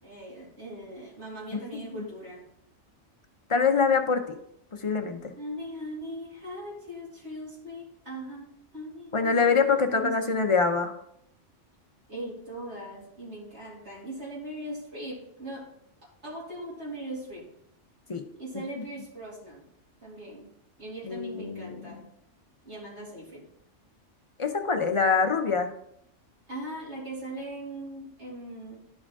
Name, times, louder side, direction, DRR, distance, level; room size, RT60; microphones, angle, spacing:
voice 1, 0.0-2.4 5.4-9.5 9.9-10.5 12.1-15.7 16.0-17.5 18.4-19.6 20.0-20.5 20.8-22.0 22.6-23.5 26.5-28.8, right 1 dB, 60° right, -7 dB, 2.7 m, -40 dB
voice 2, 1.5-2.0 3.5-4.3 4.8-5.3 9.1-10.9 18.1-18.2 21.1-22.0 24.4-25.7, left 5 dB, 35° left, 6 dB, 0.6 m, -25 dB
11.5 x 5.0 x 3.6 m, 0.73 s
omnidirectional pair, 1.3 m